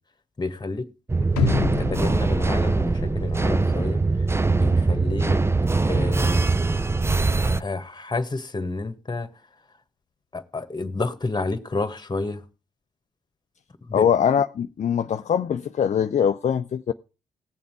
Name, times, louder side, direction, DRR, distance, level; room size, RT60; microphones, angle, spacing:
voice 1, 0.4-0.9 1.2-5.4 5.8-6.5 7.6-9.3 10.3-12.4 13.8-14.1, left 3 dB, 25° left, 1.6 m, -30 dB
sound 1, 1.1-7.6, right 3 dB, 15° right, 0.6 m, -22 dB
sound 2, 1.4-3.5 3.9-4.0, left 5 dB, 85° left, 0.8 m, -28 dB
voice 2, 13.9-16.9, left 8 dB, 50° left, 0.6 m, -22 dB
18.0 x 7.2 x 4.7 m
hypercardioid pair, 40°, 16 cm